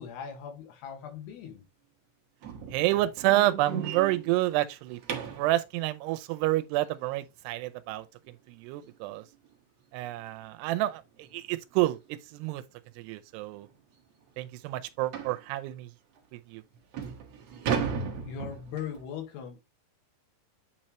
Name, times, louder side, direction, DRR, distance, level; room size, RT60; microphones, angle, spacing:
voice 1, 0.0-1.6 18.2-19.6, left 8 dB, 80° left, 3.6 m, -39 dB
sound 1, 2.4-5.5 8.3-8.4 8.9-9.1 9.4-9.5 10.0-10.1 11.2-11.4 11.8-11.9 12.6-12.7 13.0-13.1 13.6-13.7 15.1-15.4 16.2-16.3 16.7-19.0, right 6 dB, 65° right, 1.6 m, -35 dB
voice 2, 2.7-8.1 8.5-9.3 9.9-12.6 13.0-13.7 14.4-15.9 16.3-16.6, right 16 dB, 85° right, 2.7 m, -29 dB
9.3 x 4.3 x 3.1 m
omnidirectional pair, 4.8 m